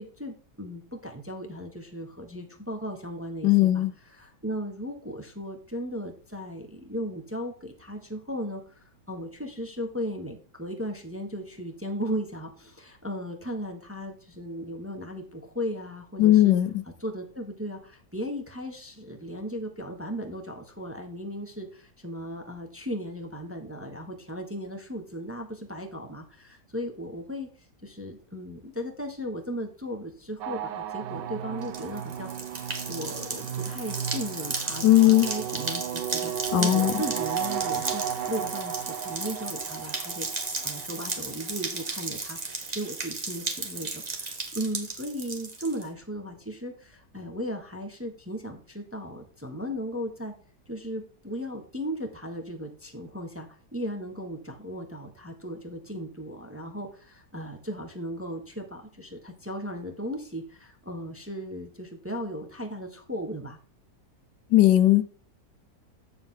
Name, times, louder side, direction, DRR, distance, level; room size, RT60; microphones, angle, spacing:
voice 1, 0.0-3.8 4.2-16.5 17.0-27.5 27.8-32.3 32.6-40.3 40.6-50.3 50.7-63.6, equal, 10° right, 3 dB, 0.9 m, -36 dB
voice 2, 3.4-3.9 16.2-16.8 34.8-35.3 36.5-37.0 64.5-65.1, left 14 dB, 85° left, 14 dB, 1.3 m, -18 dB
sound 1, 30.4-41.5, right 9 dB, 80° right, 1.3 m, -34 dB
sound 2, 31.6-45.8, right 3 dB, 25° right, 1.2 m, -35 dB
8.1 x 6.9 x 3.7 m, 0.43 s
omnidirectional pair, 1.9 m